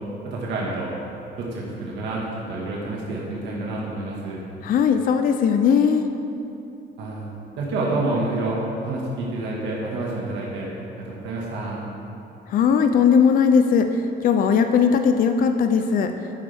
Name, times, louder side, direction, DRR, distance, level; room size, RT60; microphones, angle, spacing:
voice 1, 0.2-0.9 1.4-2.2 2.5-4.4 7.0-7.3 7.6-10.7 11.0-11.8, right 2 dB, 80° right, -4 dB, 1.9 m, -28 dB
voice 2, 4.6-6.1 12.5-13.9 14.2-16.1, left 6 dB, 50° left, 7 dB, 0.6 m, -18 dB
12.0 x 9.6 x 3.6 m, 2.8 s
cardioid pair, 170°, 18 cm